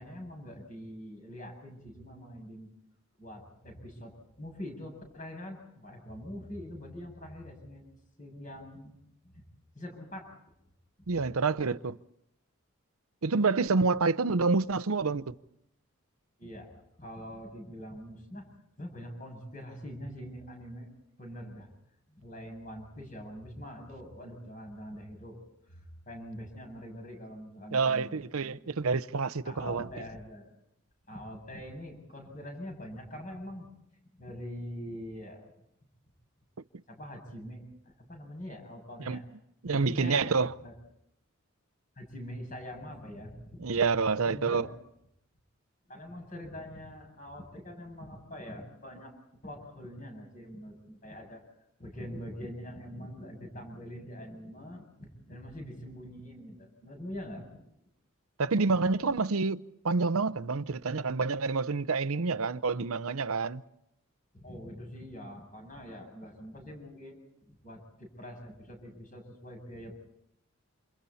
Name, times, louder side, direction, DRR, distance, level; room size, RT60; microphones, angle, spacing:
voice 1, 0.0-2.7 3.2-7.8 8.2-9.0 9.2-9.3 9.7-10.3 16.4-18.5 18.8-20.9 21.2-21.7 22.1-28.7 29.4-30.5 31.1-33.7 34.2-35.5 36.9-39.2 39.7-40.7 42.0-43.7 44.2-44.7 45.9-49.1 49.4-51.4 51.8-57.5 64.3-67.2 67.6-69.9, equal, 35° left, 7.4 m, -44 dB
voice 2, 11.1-12.0 13.2-15.3 27.7-29.8 39.0-39.2 39.6-40.5 43.6-44.7 58.4-63.6, right 4 dB, 80° right, 0.7 m, -28 dB
28.5 x 28.0 x 4.2 m
head